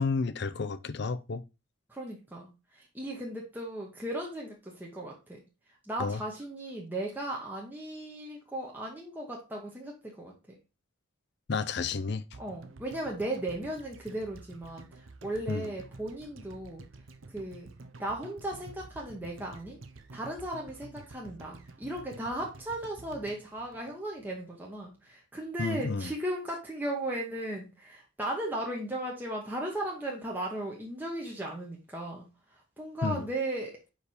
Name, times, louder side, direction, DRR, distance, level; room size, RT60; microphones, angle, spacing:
voice 1, 0.0-1.4 6.0-6.2 11.5-12.2 15.5-15.7 25.6-26.1 33.0-33.3, left 4 dB, 60° left, 0.5 m, -31 dB
voice 2, 1.9-5.4 5.9-10.3 12.4-16.8 17.3-17.7 18.0-19.8 20.1-32.3 32.8-33.7, right 1 dB, 10° right, 1.0 m, -36 dB
sound 1, 12.3-24.5 24.8-24.9, right 3 dB, 85° right, 0.7 m, -50 dB
5.1 x 4.7 x 4.1 m
head